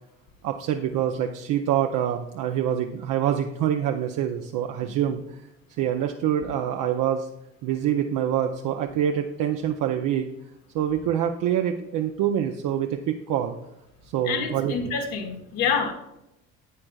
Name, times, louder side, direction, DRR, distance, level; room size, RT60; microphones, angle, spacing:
voice 1, 0.4-5.4 5.8-7.3 7.6-10.3 10.7-13.6 14.1-14.9, right 10 dB, 50° right, 4 dB, 0.7 m, -25 dB
voice 2, 14.2-15.9, left 6 dB, 65° left, 3 dB, 1.5 m, -27 dB
11.0 x 8.5 x 2.3 m, 0.89 s
hypercardioid pair, 60°, 40 cm